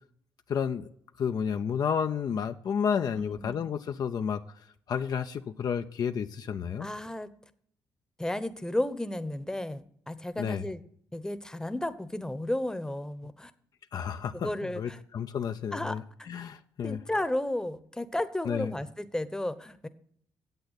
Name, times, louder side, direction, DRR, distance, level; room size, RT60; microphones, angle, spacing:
voice 1, 0.5-0.9 1.2-4.4 4.9-6.9 10.4-10.6 13.9-14.5 14.7-17.0 18.4-18.7, left 7 dB, 60° left, 8 dB, 0.6 m, -31 dB
voice 2, 3.2-3.7 6.8-7.3 8.2-10.8 11.1-13.5 14.4-15.0 15.7-16.3 16.8-19.9, left 1 dB, 10° left, 12 dB, 0.9 m, -33 dB
9.0 x 8.0 x 8.1 m, 0.65 s
supercardioid pair, 65°, 8 cm